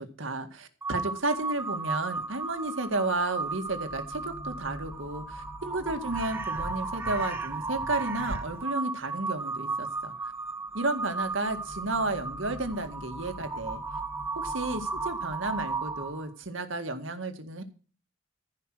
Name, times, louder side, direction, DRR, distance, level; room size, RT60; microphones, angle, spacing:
voice 1, 0.0-10.3 10.7-13.8 14.4-17.6, right 2 dB, 75° right, 7 dB, 2.0 m, -32 dB
Crow, 0.8-16.3, right 3 dB, 10° right, 1.4 m, -34 dB
15.0 x 5.8 x 6.2 m, 0.37 s
head